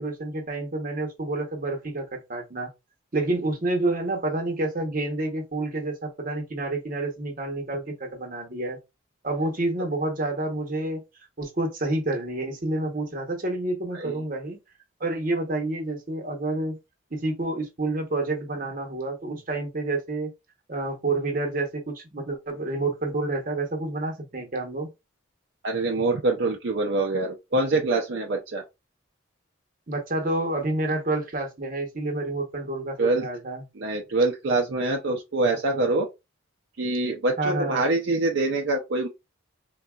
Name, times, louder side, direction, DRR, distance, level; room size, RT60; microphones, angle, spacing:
voice 1, 0.0-2.7 3.1-8.8 9.2-11.0 11.4-14.6 15.0-16.8 17.1-20.3 20.7-24.9 29.9-33.7 37.4-37.8, right 2 dB, 45° right, 0.9 m, -29 dB
voice 2, 25.6-28.6 33.0-33.3 33.8-36.1 36.8-39.1, right 2 dB, 65° right, 0.5 m, -25 dB
3.9 x 2.3 x 2.3 m
head